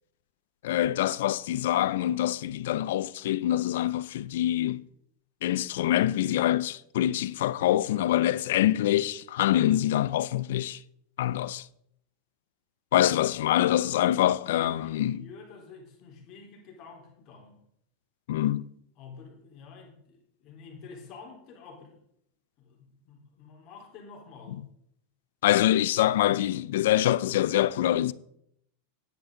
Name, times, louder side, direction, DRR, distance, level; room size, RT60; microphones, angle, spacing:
voice 1, 0.6-4.8 5.4-10.8 11.2-11.7 12.9-15.2 18.3-18.7 25.4-28.1, left 13 dB, 75° left, 0.5 m, -25 dB
voice 2, 14.5-17.6 19.0-22.0 22.6-24.6, left 4 dB, 45° left, 4.1 m, -48 dB
10.5 x 10.5 x 3.9 m
supercardioid pair, 130°, 0 cm